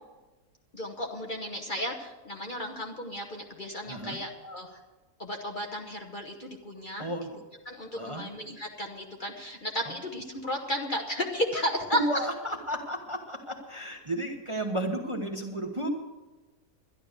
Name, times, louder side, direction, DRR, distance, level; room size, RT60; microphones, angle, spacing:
voice 1, 0.7-4.8 5.2-7.1 7.7-12.3, equal, 35° left, 2 dB, 1.1 m, -34 dB
voice 2, 3.9-4.2 7.0-7.4 7.9-8.2 9.8-9.9 11.9-15.9, right 1 dB, 25° right, 3 dB, 1.0 m, -33 dB
12.0 x 11.0 x 6.6 m, 1.2 s
omnidirectional pair, 1.7 m